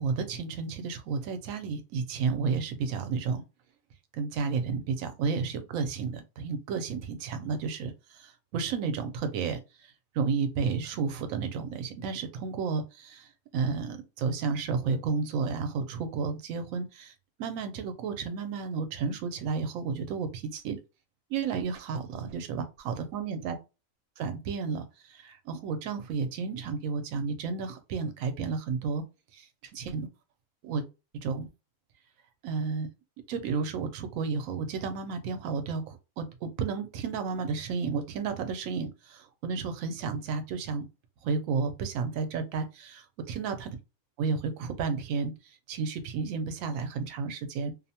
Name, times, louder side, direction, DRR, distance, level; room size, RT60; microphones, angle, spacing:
voice 1, 0.0-3.4 4.1-17.1 17.4-20.8 21.3-23.6 24.2-29.0 29.3-30.1 30.6-30.8 31.2-31.5 32.4-32.9 33.3-40.8 41.2-43.7 44.2-47.7, right 5 dB, 85° right, 1.0 m, -32 dB
2.7 x 2.0 x 2.7 m
omnidirectional pair, 1.4 m